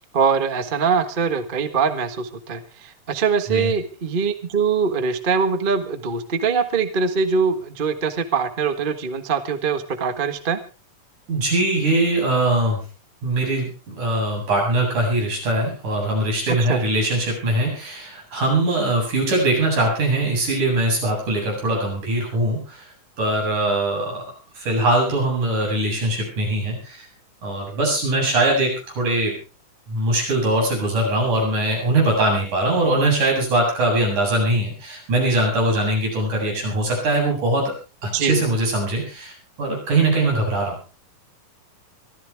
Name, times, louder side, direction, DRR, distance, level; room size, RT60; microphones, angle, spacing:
voice 1, 0.1-10.6 16.7-16.8 38.1-38.4, right 5 dB, 40° right, 9 dB, 0.7 m, -23 dB
voice 2, 11.3-12.8 13.2-22.9 23.2-24.2 24.5-27.1 27.4-29.3 29.9-37.7 38.0-40.8, right 2 dB, 75° right, -1 dB, 9.4 m, -21 dB
24.5 x 14.5 x 3.5 m, 0.34 s
omnidirectional pair, 3.5 m